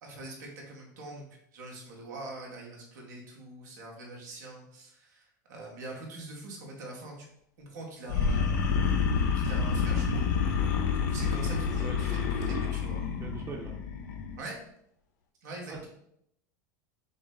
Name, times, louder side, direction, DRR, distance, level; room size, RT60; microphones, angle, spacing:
voice 1, 0.0-7.3 7.6-8.5 9.3-10.2 10.8-13.0 14.4-14.6 15.4-15.9, right 2 dB, 80° right, -1 dB, 1.4 m, -43 dB
sound 1, 8.1-14.4, left 6 dB, 75° left, 0.8 m, -28 dB
voice 2, 11.8-12.3 13.2-13.7 15.7-15.9, right 3 dB, 25° right, 0 dB, 0.9 m, -41 dB
6.0 x 2.1 x 3.9 m, 0.73 s
hypercardioid pair, 100°, 10 cm